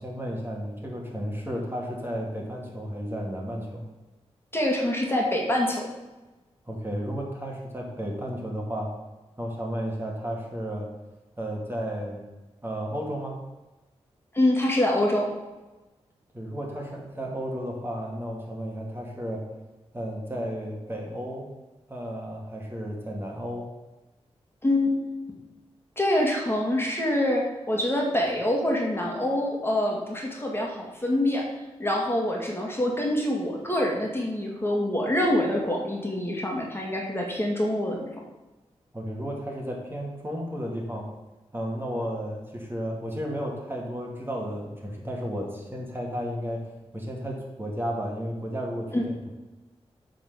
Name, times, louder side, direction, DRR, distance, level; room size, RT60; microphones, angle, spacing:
voice 1, 0.0-3.9 6.7-8.9 9.4-10.9 11.4-12.2 12.6-13.4 16.3-19.4 19.9-21.5 21.9-23.7 38.9-41.1 41.5-46.7 46.9-49.3, equal, 20° right, -1 dB, 2.2 m, -33 dB
voice 2, 4.5-5.9 14.3-15.3 24.6-25.0 26.0-31.5 31.8-38.1 48.9-49.0, left 1 dB, 20° left, -1 dB, 2.2 m, -25 dB
8.5 x 4.1 x 6.9 m, 1.1 s
cardioid pair, 50°, 11 cm